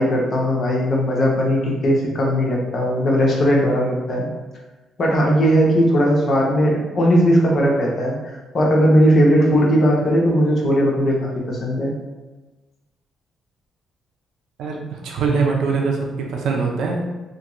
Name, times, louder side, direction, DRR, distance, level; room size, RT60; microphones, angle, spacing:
voice 1, 0.0-4.3 5.0-11.9, equal, 50° left, -2 dB, 0.7 m, -18 dB
voice 2, 14.6-17.0, right 4 dB, 80° right, 0 dB, 0.5 m, -22 dB
2.5 x 2.3 x 2.9 m, 1.2 s
cardioid pair, 90°, 0 cm